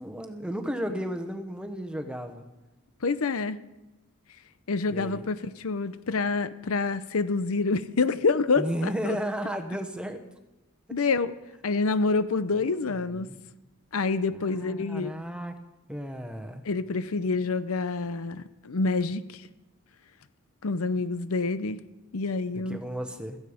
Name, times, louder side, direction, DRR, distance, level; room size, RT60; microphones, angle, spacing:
voice 1, 0.0-2.4 4.9-5.2 8.6-10.2 12.5-13.4 14.3-15.6 15.9-16.6 22.5-23.4, equal, 5° right, 6 dB, 1.1 m, -34 dB
voice 2, 3.0-3.6 4.7-9.2 10.9-11.3 11.6-13.3 13.9-15.1 16.6-19.5 20.6-21.8 22.1-22.8, left 4 dB, 70° left, 14 dB, 0.7 m, -27 dB
17.0 x 14.5 x 5.1 m, 0.99 s
head